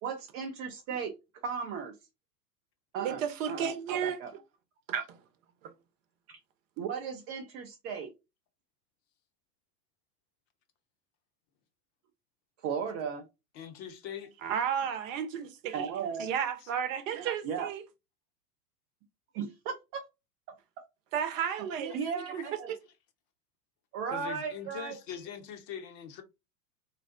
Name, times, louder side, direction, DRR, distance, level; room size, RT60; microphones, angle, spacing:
voice 1, 0.0-1.1 1.4-2.0 2.9-3.2 3.5-4.3 6.3-6.4 6.8-8.1 12.6-13.3 15.7-16.3 17.4-17.7 19.3-20.0 21.9-22.7 23.9-25.0, right 6 dB, 30° right, 0.5 m, -36 dB
voice 2, 3.0-4.2 4.9-5.2 5.6-5.7 14.4-15.9 16.2-17.8 21.1-22.8, right 8 dB, 55° right, 0.8 m, -33 dB
voice 3, 13.5-14.3 16.6-16.7 21.9-22.0 22.3-22.4 24.1-26.2, left 8 dB, 40° left, 0.8 m, -42 dB
3.9 x 2.0 x 2.5 m
figure-of-eight pair, 90°, 48 cm